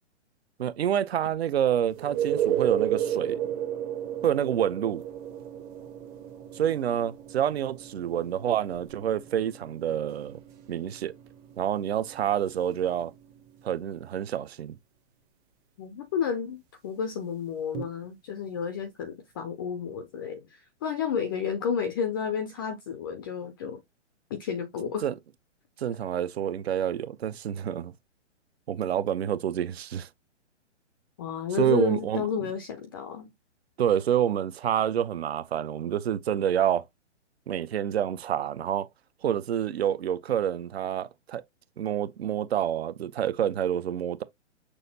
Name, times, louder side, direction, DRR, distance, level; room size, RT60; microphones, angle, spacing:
voice 1, 0.6-3.4 4.2-5.0 6.5-10.4 10.7-11.1 11.6-13.1 13.6-14.8 24.8-25.1 25.8-27.9 28.7-30.1 31.6-32.3 33.8-36.9 37.5-38.9 39.2-41.4 41.8-44.2, right 10 dB, 60° right, 0.7 m, -28 dB
sound 1, 1.9-13.5 17.7-17.8, right 10 dB, 25° right, 0.8 m, -33 dB
voice 2, 15.8-16.6 16.8-23.8 24.3-25.0 31.2-33.3, left 7 dB, 20° left, 0.4 m, -31 dB
6.3 x 2.6 x 2.8 m
figure-of-eight pair, 125°, 36 cm